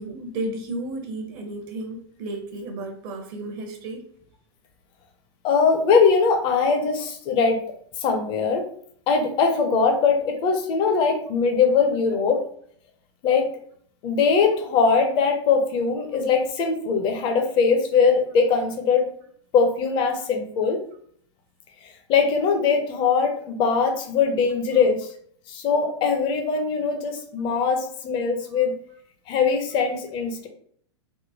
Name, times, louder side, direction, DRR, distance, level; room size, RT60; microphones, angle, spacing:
voice 1, 0.0-4.0, right 2 dB, 50° right, 4 dB, 0.7 m, -33 dB
voice 2, 5.4-7.6 8.0-8.6 9.1-12.4 13.2-13.5 14.0-19.1 19.5-20.8 22.1-25.1 25.5-28.7 29.3-30.5, left 5 dB, 35° left, 4 dB, 0.6 m, -21 dB
3.6 x 2.1 x 2.7 m, 0.63 s
figure-of-eight pair, 100°, 15 cm